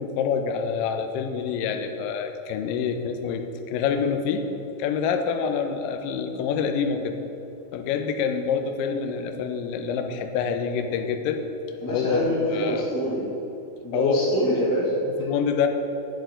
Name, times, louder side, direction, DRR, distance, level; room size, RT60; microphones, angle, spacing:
voice 1, 0.0-4.5 4.8-7.1 7.7-11.4 11.9-12.9 13.9-14.1 15.1-15.7, left 6 dB, 90° left, 6 dB, 2.0 m, -26 dB
voice 2, 11.8-13.3 13.8-14.9, equal, 15° left, -8 dB, 0.8 m, -25 dB
10.5 x 9.0 x 3.8 m, 2.9 s
omnidirectional pair, 4.7 m